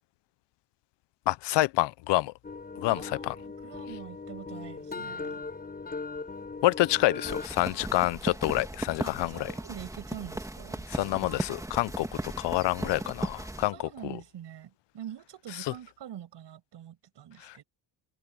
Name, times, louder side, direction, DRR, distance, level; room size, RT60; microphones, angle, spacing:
voice 1, 1.3-2.3 2.8-3.3 6.6-9.5 10.9-14.2 15.6-15.7 17.4-17.6, left 18 dB, 70° left, 0.5 m, -28 dB
sound 1, 2.4-7.5, left 4 dB, 20° left, 3.7 m, -39 dB
voice 2, 2.9-5.4 9.0-10.9 13.7-17.6, right 10 dB, 65° right, 6.9 m, -45 dB
sound 2, 7.2-13.7, right 1 dB, 5° right, 2.1 m, -37 dB
open air
cardioid pair, 120°, 44 cm